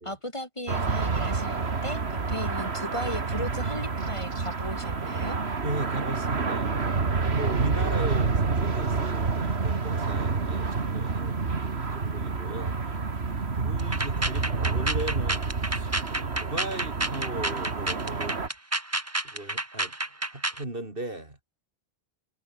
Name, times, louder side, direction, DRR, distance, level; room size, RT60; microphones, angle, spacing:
voice 1, 0.0-5.4, left 1 dB, 30° left, 4.2 m, -36 dB
sound 1, 0.7-18.5, right 4 dB, 90° right, 2.3 m, -28 dB
voice 2, 5.6-7.0 7.3-11.3 11.8-12.8 13.5-18.5 19.2-21.4, right 2 dB, 60° right, 4.5 m, -37 dB
sound 2, 13.8-20.6, right 2 dB, 15° right, 1.3 m, -30 dB
omnidirectional pair, 1.1 m